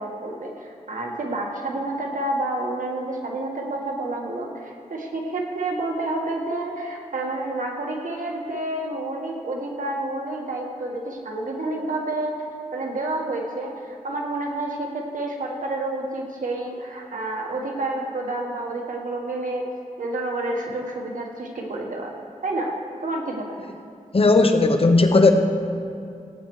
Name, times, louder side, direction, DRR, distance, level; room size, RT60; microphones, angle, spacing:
voice 1, 0.0-12.4 12.7-19.7 20.0-22.1 22.4-22.7 23.0-23.7, right 2 dB, 80° right, 0 dB, 1.5 m, -29 dB
voice 2, 24.1-25.3, left 3 dB, 45° left, 6 dB, 0.8 m, -16 dB
18.0 x 9.0 x 3.2 m, 2.4 s
wide cardioid pair, 75°, 13 cm